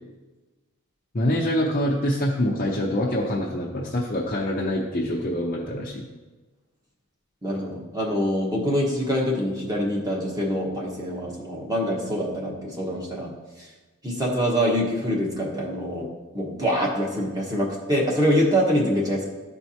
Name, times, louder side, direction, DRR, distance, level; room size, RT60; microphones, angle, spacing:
voice 1, 1.1-6.1, left 1 dB, 40° left, -3 dB, 0.7 m, -25 dB
voice 2, 7.4-13.3 13.6-13.7 14.0-16.1 16.3-19.2, equal, 15° right, -3 dB, 1.3 m, -25 dB
12.5 x 4.5 x 2.8 m, 1.2 s
head